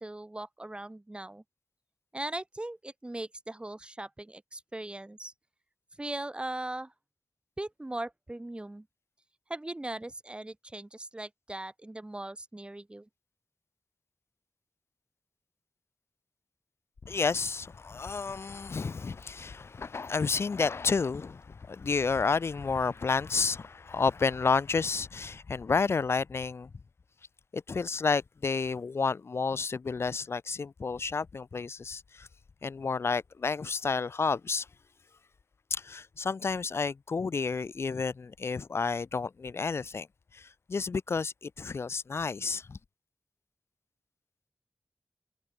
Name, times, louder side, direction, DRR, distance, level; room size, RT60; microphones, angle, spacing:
voice 1, 0.0-1.4 2.1-5.3 6.0-6.9 7.6-8.9 9.5-13.1, right 1 dB, 20° right, 5.6 m, -39 dB
voice 2, 17.0-26.7 27.5-32.3 32.6-34.7 35.7-40.1 40.3-42.8, left 4 dB, 65° left, 0.8 m, -30 dB
wide cardioid pair, 95°, 5 cm